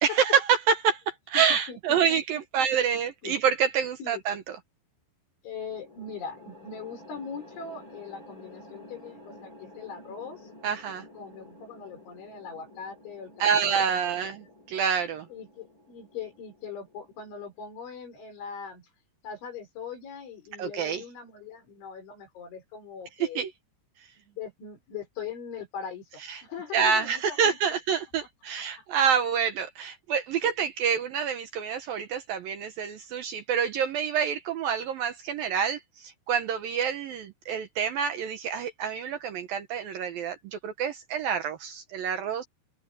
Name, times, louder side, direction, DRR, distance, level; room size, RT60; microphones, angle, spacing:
voice 1, 0.0-4.4 10.6-11.1 13.4-15.3 20.6-21.0 23.4-23.5 26.3-26.4 26.7-42.5, right 7 dB, 70° right, 2.3 m, -27 dB
voice 2, 1.3-2.4 3.2-3.4 4.0-4.2 5.4-10.5 11.1-14.0 15.3-18.9 19.2-23.4 24.2-27.8 28.8-28.9, left 6 dB, 85° left, 8.1 m, -41 dB
sound 1, 5.7-18.0, left 1 dB, 25° left, 5.5 m, -51 dB
open air
omnidirectional pair, 5.3 m